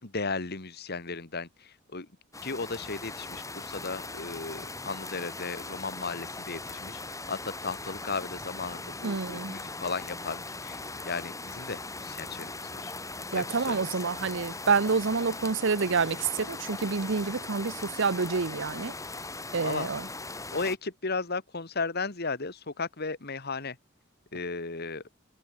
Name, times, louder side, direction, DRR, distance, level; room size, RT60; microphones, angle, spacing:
voice 1, 0.0-2.1 2.4-13.0 13.3-14.0 19.6-19.9 20.5-23.8 24.3-25.0, left 4 dB, 55° left, 2.0 m, -35 dB
sound 1, 2.3-20.8, left 3 dB, 15° left, 7.2 m, -39 dB
voice 2, 9.0-9.5 13.3-18.9 19.5-20.1, right 5 dB, 65° right, 0.8 m, -28 dB
head